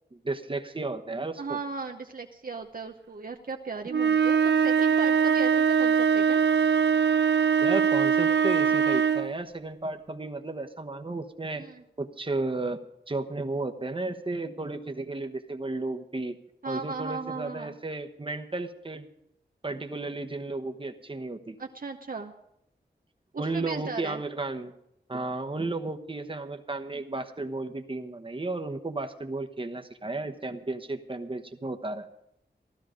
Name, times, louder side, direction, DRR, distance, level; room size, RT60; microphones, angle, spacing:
voice 1, 0.1-1.6 7.6-11.6 12.0-12.8 13.1-16.4 16.6-19.1 19.6-21.6 23.4-24.7 25.1-32.1, right 2 dB, 30° right, 5 dB, 1.2 m, -33 dB
voice 2, 1.4-6.4 11.6-11.8 16.6-17.8 21.6-22.3 23.3-24.2, right 4 dB, 55° right, 3 dB, 0.8 m, -37 dB
sound 1, 3.9-9.4, right 7 dB, 80° right, 0.5 m, -22 dB
15.0 x 12.5 x 5.2 m, 0.78 s
wide cardioid pair, 55°, 18 cm